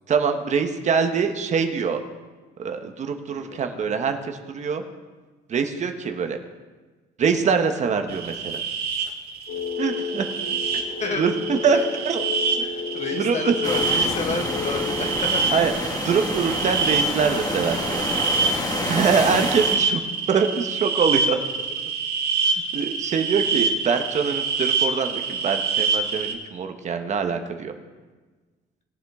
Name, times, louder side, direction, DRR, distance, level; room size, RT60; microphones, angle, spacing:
voice 1, 0.1-2.0 2.6-4.8 5.5-6.4 7.2-8.6 9.8-10.3 11.2-11.8 12.0-12.2 13.1-13.5 15.5-15.7 16.0-18.0 18.9-20.0 20.3-21.4 22.7-27.7, right 6 dB, 45° right, 6 dB, 1.1 m, -24 dB
voice 2, 3.3-3.6 11.0-11.3 11.7-11.8 12.6-15.5 18.3-18.6 22.4-22.6 23.3-23.6, left 4 dB, 45° left, 4 dB, 1.6 m, -31 dB
sound 1, 8.1-26.3, right 5 dB, 65° right, 1.8 m, -26 dB
sound 2, 9.5-15.2, left 5 dB, 75° left, 4.0 m, -31 dB
sound 3, 13.6-19.8, left 1 dB, 20° left, 1.8 m, -28 dB
20.0 x 7.4 x 3.7 m, 1.3 s
cardioid pair, 110°, 17 cm